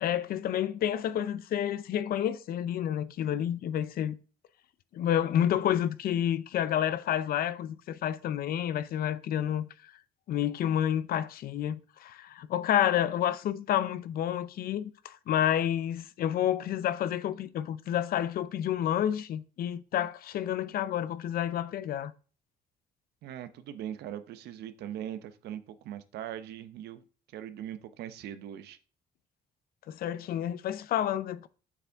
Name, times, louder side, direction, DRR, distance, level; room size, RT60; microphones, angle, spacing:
voice 1, 0.0-4.2 4.9-9.9 10.3-22.1 29.9-31.5, left 10 dB, 60° left, 0.6 m, -29 dB
voice 2, 23.2-27.0 27.3-28.8, right 10 dB, 75° right, 0.9 m, -40 dB
7.4 x 6.9 x 3.5 m
cardioid pair, 110°, 17 cm